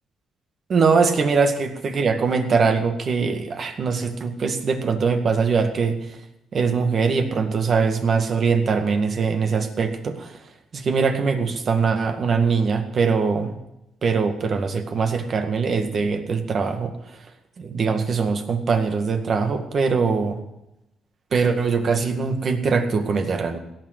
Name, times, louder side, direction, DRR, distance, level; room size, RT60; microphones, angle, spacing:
voice 1, 0.7-6.0 6.5-10.3 10.7-13.6 14.0-16.9 17.6-20.4 21.3-23.6, right 5 dB, 50° right, 6 dB, 2.0 m, -22 dB
17.0 x 6.6 x 9.5 m, 0.89 s
cardioid pair, 90°, 0 cm